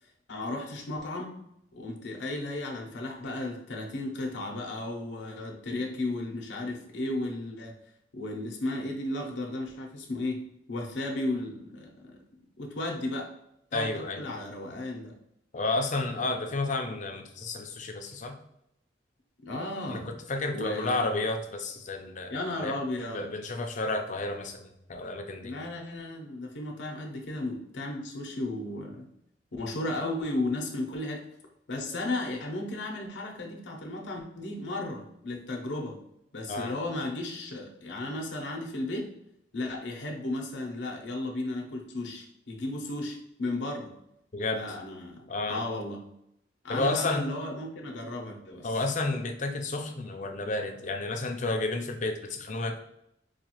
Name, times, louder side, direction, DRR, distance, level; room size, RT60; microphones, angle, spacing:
voice 1, 0.3-1.3 1.7-7.7 8.1-12.2 12.6-13.3 13.7-15.1 19.4-20.1 20.5-21.1 22.3-23.3 25.4-29.1 29.5-31.2 31.7-36.0 36.3-39.1 39.5-43.9 44.5-46.0 46.6-48.7, left 2 dB, 85° left, 0 dB, 0.7 m, -34 dB
voice 2, 13.7-14.2 15.5-18.4 19.9-22.7 23.1-25.6 36.5-36.8 44.3-44.7 45.3-45.6 46.7-47.3 48.6-52.8, left 2 dB, 45° left, 5 dB, 0.5 m, -31 dB
4.8 x 2.4 x 2.9 m, 0.77 s
head